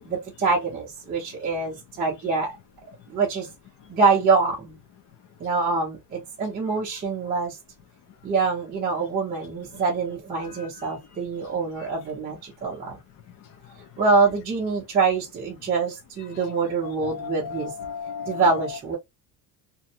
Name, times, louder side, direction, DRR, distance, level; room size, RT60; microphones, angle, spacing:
voice 1, 0.0-2.5 3.1-3.5 3.9-4.8 5.4-7.6 8.2-13.0 14.0-17.7 18.3-19.0, right 4 dB, 20° right, 0.7 m, -25 dB
voice 2, 17.0-18.4, left 6 dB, 40° left, 0.5 m, -34 dB
2.7 x 2.2 x 2.8 m
cardioid pair, 170°, 46 cm